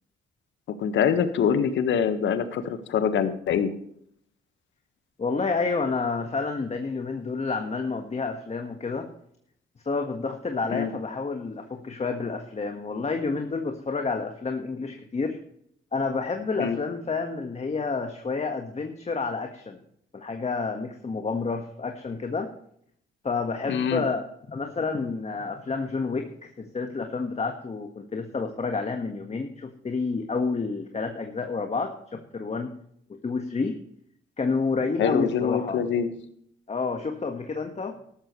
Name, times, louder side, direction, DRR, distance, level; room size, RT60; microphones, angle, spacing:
voice 1, 0.7-3.7 10.7-10.9 16.6-16.8 23.7-24.0 35.0-36.1, left 7 dB, 75° left, 10 dB, 1.4 m, -24 dB
voice 2, 5.2-9.1 9.8-15.4 15.9-19.8 20.1-22.5 23.2-32.7 33.2-33.8 34.4-35.8 36.7-38.0, left 4 dB, 35° left, 5 dB, 1.5 m, -29 dB
13.5 x 12.5 x 3.2 m, 0.69 s
supercardioid pair, 65°, 20 cm